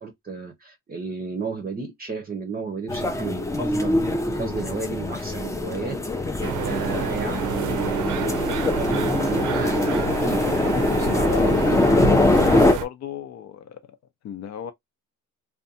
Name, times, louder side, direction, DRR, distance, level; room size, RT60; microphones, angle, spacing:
voice 1, 0.0-6.3 6.6-8.3 8.6-10.6 11.0-11.8, right 5 dB, 30° right, 0.6 m, -33 dB
sound 1, 2.9-12.7, left 2 dB, 10° left, 0.4 m, -23 dB
sound 2, 6.4-12.9, right 8 dB, 80° right, 0.6 m, -30 dB
voice 2, 11.2-11.6 12.3-13.8 14.2-14.7, left 9 dB, 60° left, 0.6 m, -33 dB
2.6 x 2.2 x 2.6 m
cardioid pair, 90°, 30 cm